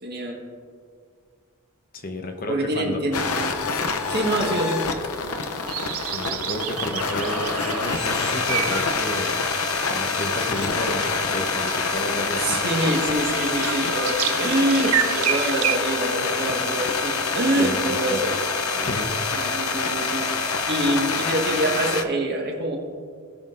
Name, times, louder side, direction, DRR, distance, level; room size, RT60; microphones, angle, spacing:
voice 1, 0.0-0.4 2.5-3.5 4.1-4.8 12.4-18.4 18.7-18.9 19.3-22.8, right 1 dB, 50° right, 0 dB, 1.6 m, -25 dB
voice 2, 1.9-3.1 6.1-9.4 9.9-12.6 16.2-16.5 17.6-18.2 18.8-19.1, left 1 dB, 40° left, 4 dB, 0.8 m, -32 dB
sound 1, 3.1-22.0, left 4 dB, 85° left, 0.6 m, -26 dB
sound 2, 5.7-15.8, right 11 dB, 75° right, 0.4 m, -31 dB
18.0 x 6.2 x 2.5 m, 2.1 s
head